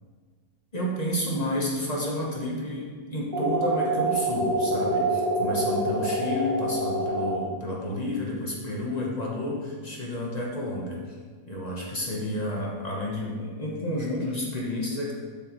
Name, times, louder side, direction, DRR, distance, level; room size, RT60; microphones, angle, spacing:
voice 1, 0.7-11.2 11.5-15.1, left 1 dB, 30° left, -3 dB, 1.0 m, -30 dB
sound 1, 3.3-7.3, right 1 dB, 35° right, 1.4 m, -26 dB
7.6 x 6.0 x 3.0 m, 1.5 s
omnidirectional pair, 1.7 m